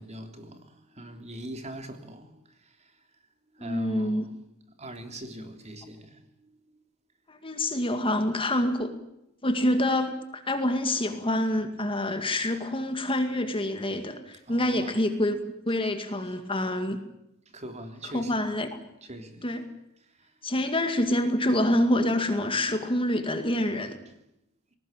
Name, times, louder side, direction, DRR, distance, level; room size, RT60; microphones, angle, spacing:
voice 1, 0.0-2.9 3.5-4.3 4.8-6.6 14.5-15.0 17.5-18.5 19.0-19.6 20.2-20.3 24.1-24.2, right 1 dB, 30° right, 3.2 m, -42 dB
voice 2, 3.6-4.3 7.3-8.9 9.4-15.4 15.7-17.0 18.0-18.7 19.4-19.6 20.4-24.0, left 1 dB, 25° left, 2.2 m, -26 dB
20.0 x 19.0 x 9.1 m
head